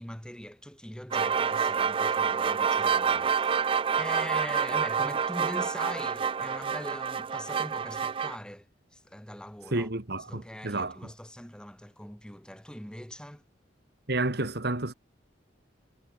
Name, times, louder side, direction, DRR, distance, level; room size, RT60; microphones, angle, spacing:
voice 1, 0.0-3.6 4.0-8.7 8.9-9.9 10.3-13.4, equal, 5° left, 3.1 m, -42 dB
sound 1, 1.1-8.4, right 6 dB, 30° right, 0.3 m, -28 dB
voice 2, 9.7-11.0 14.1-14.9, right 2 dB, 60° right, 2.3 m, -30 dB
head